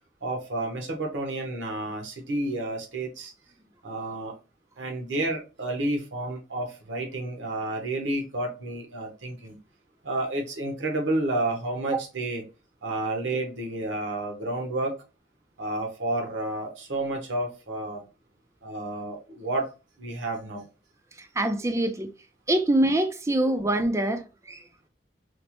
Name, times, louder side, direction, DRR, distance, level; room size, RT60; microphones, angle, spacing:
voice 1, 0.2-3.3 3.8-4.3 4.8-9.6 10.0-12.4 12.8-15.0 15.6-18.0 18.6-19.7 20.0-20.6 23.4-23.5, right 2 dB, 80° right, 0.9 m, -30 dB
voice 2, 21.4-22.1 22.5-24.2 24.5-24.6, right 1 dB, 15° right, 0.4 m, -24 dB
4.2 x 2.1 x 2.9 m
head